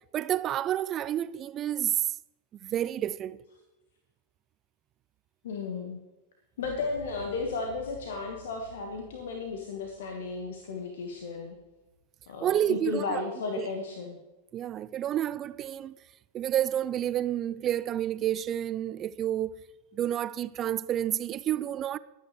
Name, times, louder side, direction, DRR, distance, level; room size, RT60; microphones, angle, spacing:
voice 1, 0.1-2.1 2.6-3.4 12.4-13.2 13.6-13.7 14.5-16.0 16.3-19.5 19.9-22.0, right 11 dB, 30° right, 0.5 m, -29 dB
voice 2, 5.4-6.0 6.6-11.6 12.3-14.2, left 4 dB, 60° left, 1.6 m, -34 dB
sound 1, 6.6-12.0, left 2 dB, 90° left, 2.2 m, -52 dB
21.5 x 9.4 x 3.3 m
figure-of-eight pair, 90°, 0 cm